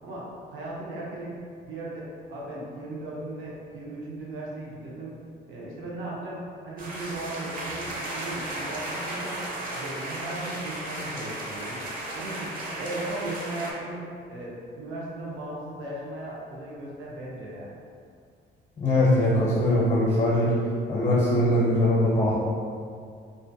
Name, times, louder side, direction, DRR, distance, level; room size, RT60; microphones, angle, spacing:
voice 1, 0.0-1.3 1.6-5.1 5.5-9.4 9.7-11.8 12.1-12.5 12.8-14.0 14.3-17.7, right 2 dB, 85° right, -6 dB, 0.6 m, -37 dB
sound 1, 6.8-13.7, right 1 dB, 45° right, 0.5 m, -35 dB
voice 2, 18.8-20.5 20.9-22.3, left 1 dB, 40° left, -6 dB, 0.6 m, -21 dB
2.4 x 2.2 x 2.6 m, 2.2 s
cardioid pair, 90°, 20 cm